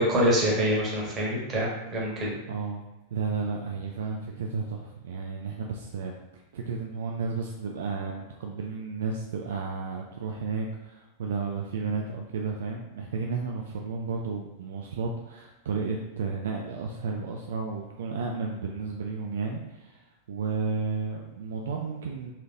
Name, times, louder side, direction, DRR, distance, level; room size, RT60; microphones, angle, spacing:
voice 1, 0.0-2.3, equal, 25° right, -5 dB, 1.5 m, -25 dB
voice 2, 2.5-2.8 3.1-6.1 6.5-22.3, right 4 dB, 60° right, 1 dB, 0.3 m, -32 dB
4.1 x 3.1 x 2.5 m, 1.0 s
figure-of-eight pair, 90°, 0 cm